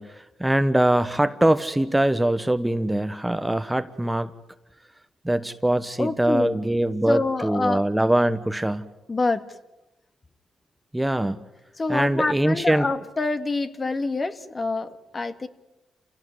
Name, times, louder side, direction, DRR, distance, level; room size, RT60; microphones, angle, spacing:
voice 1, 0.0-4.3 5.2-8.8 10.9-11.4 11.9-12.9, right 1 dB, 10° right, 11 dB, 1.2 m, -23 dB
voice 2, 6.0-6.6 7.1-7.8 9.1-9.4 11.8-15.5, left 3 dB, 30° left, 9 dB, 2.0 m, -26 dB
29.0 x 17.5 x 9.8 m, 1.0 s
cardioid pair, 80°, 0 cm